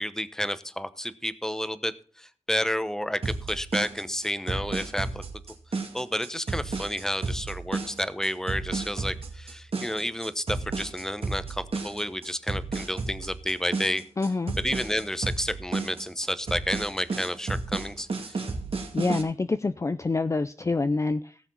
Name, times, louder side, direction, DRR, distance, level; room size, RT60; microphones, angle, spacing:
voice 1, 0.0-5.2 5.7-14.0 14.6-18.4, equal, 5° left, 13 dB, 0.9 m, -31 dB
sound 1, 3.2-19.2, right 3 dB, 60° right, 2.4 m, -32 dB
voice 2, 14.2-14.5 18.3-18.5 18.9-21.4, left 3 dB, 25° left, 11 dB, 0.4 m, -27 dB
18.0 x 7.1 x 4.0 m, 0.43 s
wide cardioid pair, 120°, 11 cm